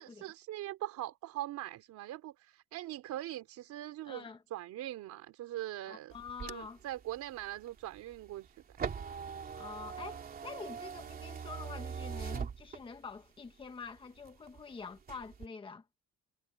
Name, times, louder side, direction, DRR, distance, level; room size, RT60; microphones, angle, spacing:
voice 1, 0.0-6.1 6.4-8.6, right 14 dB, 75° right, 3.5 m, -42 dB
voice 2, 4.1-4.4 5.9-6.8 9.5-15.8, left 5 dB, 15° left, 1.3 m, -46 dB
sound 1, 6.1-13.2 13.6-14.6 15.0-15.5, right 6 dB, 30° right, 3.1 m, -42 dB
cardioid pair, 180°, 29 cm